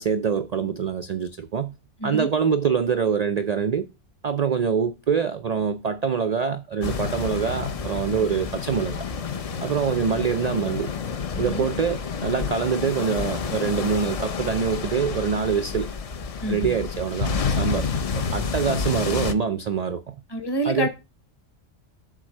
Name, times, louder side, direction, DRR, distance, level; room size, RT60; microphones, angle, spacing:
voice 1, 0.0-1.7 2.0-3.9 4.2-9.1 9.6-10.9 11.4-15.9 16.5-20.1 20.6-20.9, right 6 dB, 70° right, 0.3 m, -25 dB
sound 1, 6.8-19.3, left 5 dB, 55° left, 0.4 m, -29 dB
voice 2, 11.3-11.7 16.4-16.7 20.3-20.9, equal, 20° left, 1.0 m, -27 dB
7.5 x 3.9 x 6.4 m
omnidirectional pair, 1.3 m